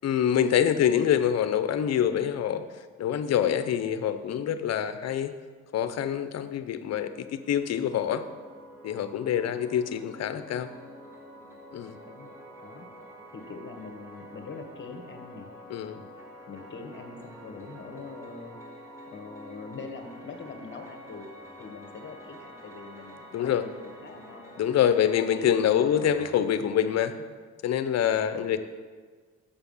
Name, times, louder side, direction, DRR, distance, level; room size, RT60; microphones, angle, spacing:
voice 1, 0.0-2.6 3.0-5.3 5.7-8.2 8.8-10.7 11.7-11.9 15.7-16.0 23.3-23.6 24.6-27.1 27.6-28.6, left 9 dB, 60° left, 11 dB, 0.7 m, -25 dB
sound 1, 7.0-26.4, equal, 10° right, 2.0 m, -48 dB
voice 2, 13.3-15.5 15.9-16.1 16.5-21.3 21.6-25.5 25.9-26.2 27.2-27.3 28.3-28.6, left 4 dB, 40° left, 5 dB, 1.4 m, -44 dB
7.2 x 7.0 x 5.4 m, 1.5 s
cardioid pair, 90°, 30 cm